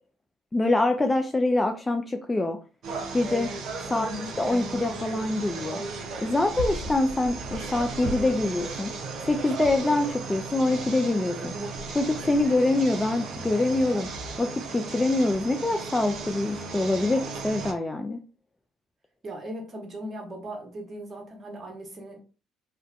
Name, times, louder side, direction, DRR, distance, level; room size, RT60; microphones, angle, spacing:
voice 1, 0.5-2.6 3.1-3.5 3.9-4.1 4.4-5.8 6.2-8.9 9.2-11.5 11.9-14.1 14.4-18.2, left 2 dB, 20° left, 5 dB, 0.3 m, -25 dB
sound 1, 2.8-17.7, right 3 dB, 60° right, 0.5 m, -35 dB
voice 2, 3.9-4.3 19.2-22.2, equal, 40° right, 0 dB, 1.0 m, -37 dB
2.3 x 2.1 x 2.5 m, 0.35 s
hypercardioid pair, 55°, 0 cm